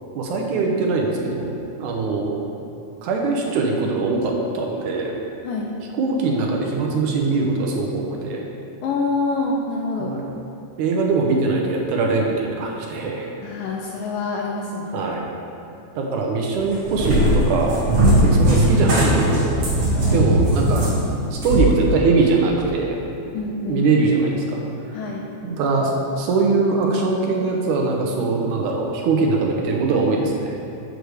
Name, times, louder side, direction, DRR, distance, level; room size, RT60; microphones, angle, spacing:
voice 1, 0.1-2.4 3.0-5.1 5.9-8.4 10.0-10.3 10.8-13.3 14.9-15.3 15.9-19.5 20.0-20.8 21.3-23.0 23.6-24.6 24.9-25.0 25.4-30.6, right 3 dB, 75° right, 0 dB, 1.8 m, -22 dB
voice 2, 8.8-10.1 13.4-15.0 18.1-18.3 20.0-20.2 23.3-23.9 24.9-25.3, left 3 dB, 80° left, 0 dB, 2.1 m, -26 dB
Cat, 16.5-21.7, right 1 dB, 50° right, 2.2 m, -18 dB
6.6 x 6.4 x 4.7 m, 2.7 s
omnidirectional pair, 4.1 m